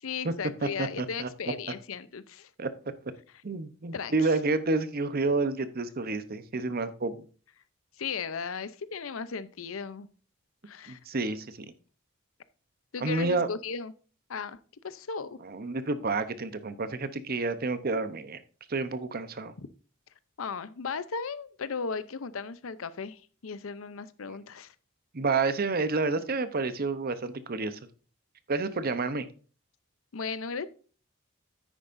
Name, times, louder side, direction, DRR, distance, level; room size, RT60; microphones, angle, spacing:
voice 1, 0.0-2.5 3.9-4.3 8.0-10.1 10.7-11.0 12.9-13.9 14.3-14.6 14.8-15.4 19.6-19.7 20.4-24.7 30.1-30.7, left 5 dB, 85° left, 15 dB, 0.7 m, -36 dB
voice 2, 0.6-1.3 2.6-2.7 3.4-7.2 10.9-11.7 13.0-13.5 15.4-18.4 18.7-19.5 25.1-27.8 28.5-29.3, right 3 dB, 50° right, 12 dB, 0.8 m, -29 dB
10.0 x 8.8 x 2.6 m, 0.38 s
head